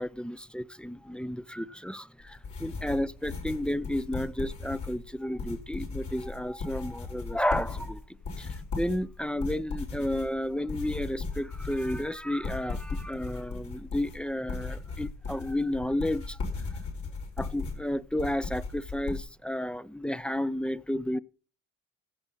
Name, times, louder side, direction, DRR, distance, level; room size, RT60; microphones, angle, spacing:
voice 1, 0.0-8.0 8.4-16.4 17.4-21.2, left 1 dB, 5° left, 0.4 m, -32 dB
sound 1, 2.2-19.2, left 4 dB, 70° left, 4.2 m, -37 dB
15.5 x 6.1 x 5.5 m
cardioid pair, 90°, 30 cm